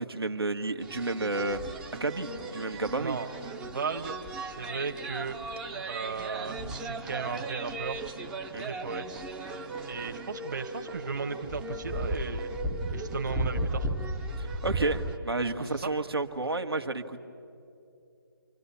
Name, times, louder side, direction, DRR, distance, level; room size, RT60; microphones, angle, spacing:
voice 1, 0.0-1.6 1.9-3.2 8.5-8.7 14.4-17.2, right 2 dB, 85° right, 5 dB, 1.7 m, -31 dB
sound 1, 0.8-15.2, right 2 dB, 5° right, 0.6 m, -36 dB
voice 2, 3.0-3.3 3.6-4.2 4.5-5.4 5.9-8.1 8.6-9.2 9.8-12.5 12.9-13.9 15.7-15.9, right 5 dB, 50° right, 5 dB, 1.4 m, -36 dB
29.5 x 26.5 x 7.1 m, 2.6 s
figure-of-eight pair, 155°, 13 cm